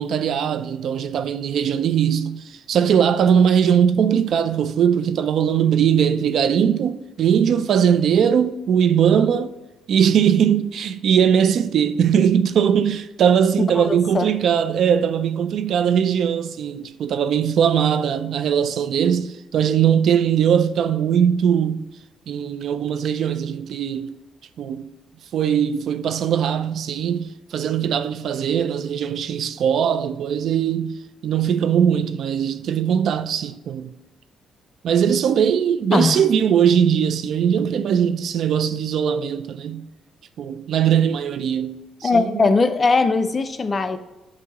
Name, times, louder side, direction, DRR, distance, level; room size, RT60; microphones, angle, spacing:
voice 1, 0.0-9.5 9.9-21.8 22.3-24.1 24.6-24.9 25.3-31.0 31.2-33.9 34.8-39.9 40.4-42.6, right 8 dB, 70° right, 0.4 m, -20 dB
voice 2, 13.7-14.3 35.9-36.2 42.0-44.0, left 3 dB, 35° left, 0.5 m, -20 dB
8.2 x 2.7 x 4.8 m
cardioid pair, 90°, 0 cm